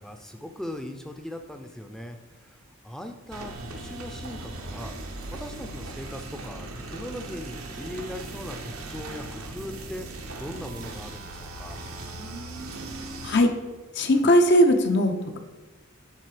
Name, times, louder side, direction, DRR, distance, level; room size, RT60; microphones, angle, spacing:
voice 1, 0.0-2.2 2.5-2.6 2.8-4.9 5.3-11.8, left 1 dB, ahead, 5 dB, 0.6 m, -39 dB
sound 1, 3.3-13.4, right 2 dB, 90° right, 1.1 m, -38 dB
voice 2, 13.9-15.4, equal, 55° left, 6 dB, 0.8 m, -19 dB
10.5 x 3.8 x 5.0 m, 1.2 s
head